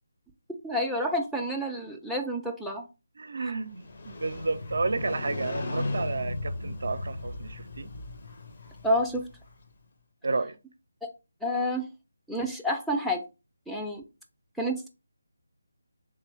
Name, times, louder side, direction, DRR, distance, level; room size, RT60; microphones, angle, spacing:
voice 1, 0.6-2.8 8.8-9.2 11.4-11.9 12.3-13.2 13.7-14.0 14.6-14.9, equal, ahead, 0.4 m, -29 dB
voice 2, 3.2-7.9 10.2-10.6, right 3 dB, 60° right, 0.4 m, -31 dB
Motorcycle, 3.7-9.6, left 2 dB, 45° left, 0.8 m, -36 dB
3.3 x 3.0 x 3.3 m
figure-of-eight pair, 155°, 0 cm